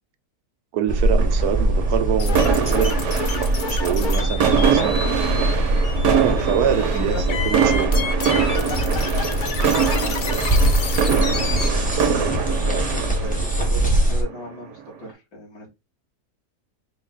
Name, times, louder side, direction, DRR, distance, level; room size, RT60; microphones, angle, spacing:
voice 1, 0.7-5.0 6.1-7.9, right 9 dB, 75° right, 1.1 m, -26 dB
sound 1, 0.9-14.2, right 1 dB, 10° left, 0.5 m, -22 dB
sound 2, 1.1-14.8, right 7 dB, 90° right, 1.3 m, -24 dB
sound 3, 2.2-11.7, left 5 dB, 85° left, 0.4 m, -31 dB
voice 2, 3.8-4.7 6.5-10.9 11.3-11.8 12.5-15.7, left 1 dB, 65° left, 2.2 m, -37 dB
4.6 x 2.2 x 3.9 m
omnidirectional pair, 1.8 m